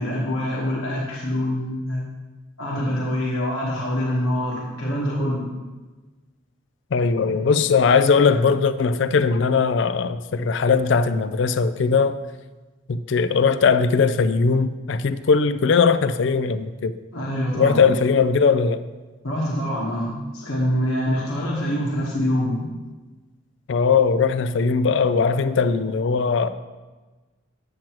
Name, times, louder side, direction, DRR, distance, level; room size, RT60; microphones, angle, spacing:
voice 1, 0.0-2.0 2.6-5.5 17.1-17.8 19.2-22.7, equal, 90° left, 1.3 m, -25 dB
voice 2, 6.9-12.2 12.9-17.0 17.5-18.8 23.7-26.5, left 5 dB, 60° left, 0.4 m, -19 dB
8.8 x 7.7 x 3.0 m
head